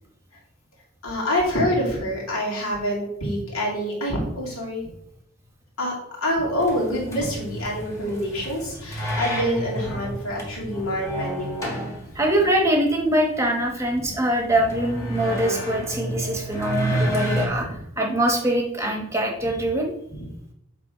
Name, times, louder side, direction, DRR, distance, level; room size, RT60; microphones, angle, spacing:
voice 1, 1.0-4.9 5.8-11.9 17.6-17.8 20.1-20.3, equal, 80° left, -3 dB, 2.5 m, -26 dB
sound 1, 6.6-17.5, equal, 15° left, 1.4 m, -30 dB
voice 2, 11.9-19.9, right 1 dB, 15° right, 1 dB, 1.0 m, -23 dB
7.7 x 3.5 x 5.0 m, 0.79 s
head